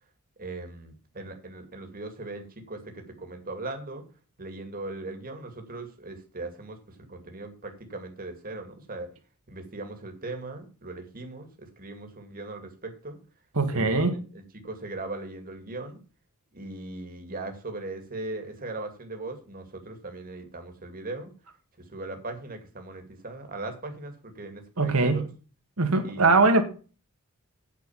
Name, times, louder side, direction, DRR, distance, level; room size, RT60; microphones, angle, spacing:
voice 1, 0.4-4.0 4.4-9.1 9.5-13.2 13.7-16.0 16.5-21.3 21.8-25.3 26.0-26.5, right 2 dB, 40° right, 2.3 m, -39 dB
voice 2, 13.6-14.2 24.8-25.3 25.8-26.6, right 3 dB, 75° right, 2.0 m, -21 dB
9.2 x 5.9 x 7.1 m
head